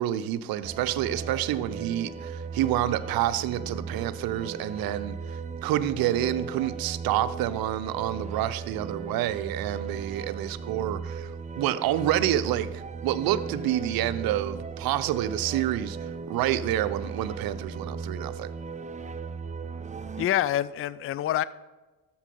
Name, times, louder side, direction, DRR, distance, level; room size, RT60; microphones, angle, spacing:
voice 1, 0.0-18.5, right 12 dB, 60° right, 0.7 m, -28 dB
sound 1, 0.6-20.3, right 5 dB, 20° right, 0.6 m, -37 dB
voice 2, 20.2-21.4, left 12 dB, 35° left, 0.4 m, -26 dB
13.0 x 4.7 x 5.3 m
hypercardioid pair, 50°, 41 cm